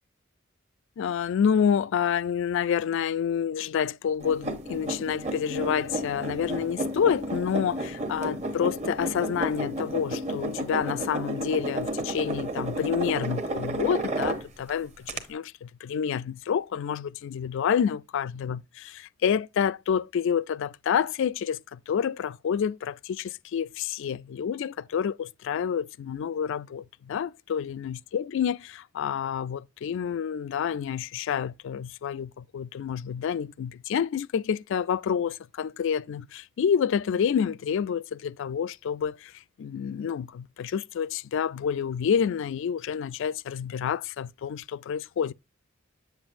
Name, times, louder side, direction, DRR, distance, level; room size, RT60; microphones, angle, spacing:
voice 1, 1.0-39.3 39.6-45.3, left 7 dB, 65° left, 0.3 m, -28 dB
sound 1, 4.2-14.7 15.1-15.2, right 1 dB, 35° right, 0.8 m, -32 dB
7.7 x 7.1 x 2.5 m
head